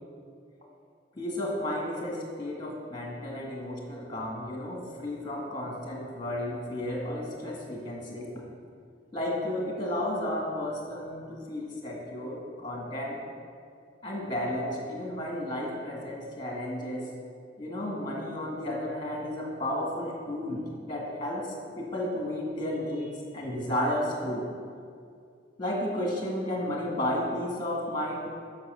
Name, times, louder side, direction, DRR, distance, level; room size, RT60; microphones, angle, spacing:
voice 1, 1.2-8.3 9.1-13.2 14.0-17.1 17.6-21.5 21.8-24.4 25.6-28.3, left 1 dB, 25° left, -2 dB, 2.0 m, -33 dB
8.1 x 6.2 x 6.4 m, 2.3 s
head